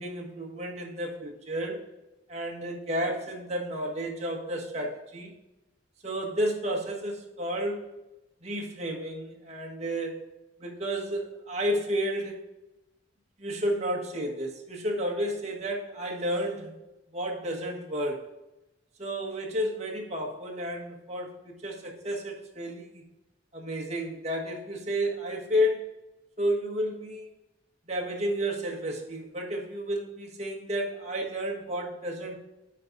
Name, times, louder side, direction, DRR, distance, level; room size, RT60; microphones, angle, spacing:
voice 1, 0.0-1.8 2.3-5.3 6.0-7.8 8.4-12.4 13.4-16.7 17.1-18.3 19.0-23.0 23.5-26.0 26.4-27.3 27.9-32.4, equal, 35° right, -1 dB, 1.5 m, -31 dB
9.9 x 4.0 x 4.0 m, 0.97 s
head